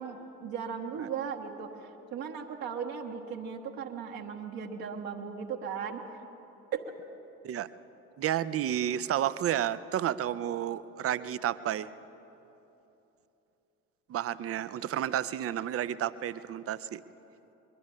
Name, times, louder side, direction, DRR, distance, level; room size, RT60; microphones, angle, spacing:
voice 1, 0.0-6.0 6.7-6.8, right 7 dB, 55° right, 1 dB, 1.4 m, -37 dB
voice 2, 8.2-11.9 14.1-17.0, right 11 dB, 35° right, 16 dB, 0.6 m, -31 dB
22.0 x 12.0 x 5.5 m, 3.0 s
figure-of-eight pair, 50°, 42 cm